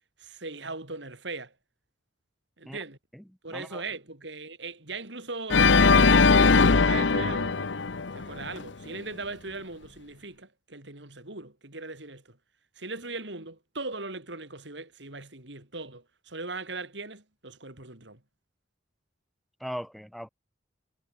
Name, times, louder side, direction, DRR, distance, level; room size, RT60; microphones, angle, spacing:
voice 1, 0.2-1.5 2.6-3.0 3.4-7.7 8.1-12.4 12.8-18.2, right 3 dB, 80° right, 4.6 m, -39 dB
voice 2, 3.5-3.8 19.6-20.3, equal, ahead, 5.4 m, -38 dB
Organ, 5.5-8.6, left 4 dB, 85° left, 0.9 m, -20 dB
head